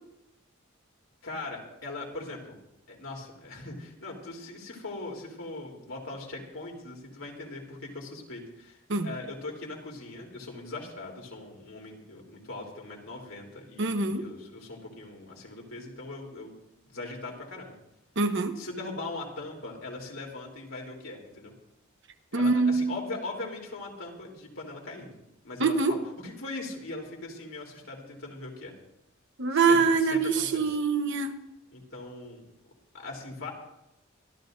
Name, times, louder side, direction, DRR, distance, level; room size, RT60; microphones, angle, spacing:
voice 1, 1.2-2.6 2.9-16.5 16.8-17.7 18.6-21.5 22.3-25.2 25.4-28.7 29.5-30.6 31.7-32.4 32.9-33.5, left 2 dB, 75° left, 3.5 m, -40 dB
voice 2, 13.8-14.2 18.2-18.6 22.3-22.9 25.6-26.0 29.4-31.3, right 4 dB, 65° right, 1.1 m, -24 dB
25.0 x 13.0 x 2.7 m
head